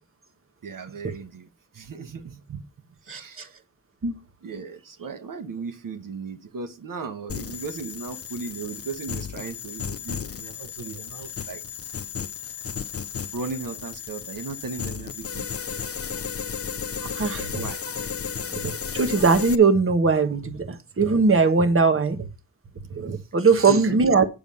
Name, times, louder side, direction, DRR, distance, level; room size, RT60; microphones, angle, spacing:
voice 1, 0.6-1.5 1.7-2.7 3.0-3.6 4.4-11.6 13.3-15.5 17.5-17.8 23.1-23.2 23.5-24.0, right 4 dB, 70° right, 1.2 m, -36 dB
voice 2, 3.1-3.5 4.0-4.2 17.0-17.7 18.5-22.2 22.9-24.3, right 4 dB, 40° right, 1.3 m, -20 dB
sound 1, 7.3-19.6, left 7 dB, 45° left, 0.7 m, -34 dB
9.2 x 6.9 x 5.6 m
wide cardioid pair, 130°, 34 cm